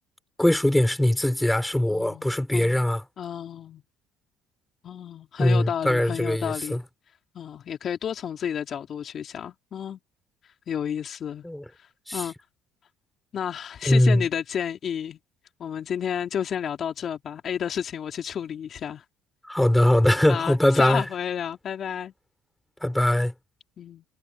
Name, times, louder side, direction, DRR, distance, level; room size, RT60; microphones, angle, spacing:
voice 1, 0.4-3.0 5.4-6.8 11.4-11.6 12.1-12.2 13.9-14.2 19.5-21.0 22.8-23.3, left 1 dB, 5° left, 5.4 m, -21 dB
voice 2, 1.9-2.8 3.2-3.8 4.8-6.8 7.3-10.0 10.7-11.5 11.8-12.3 13.3-15.2 15.6-19.0 20.3-22.1 23.8-24.0, left 8 dB, 50° left, 3.2 m, -31 dB
supercardioid pair, 90°, 0 cm